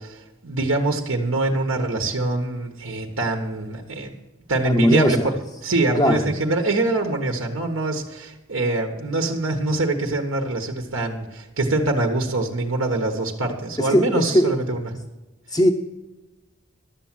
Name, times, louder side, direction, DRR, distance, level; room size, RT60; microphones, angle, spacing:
voice 1, 0.0-4.1 4.5-5.2 5.6-14.9, right 2 dB, 75° right, 3 dB, 1.3 m, -24 dB
voice 2, 4.6-5.3 6.0-6.3 13.8-14.6 15.5-15.7, equal, 15° left, 1 dB, 0.7 m, -19 dB
12.0 x 7.4 x 7.5 m, 1.1 s
head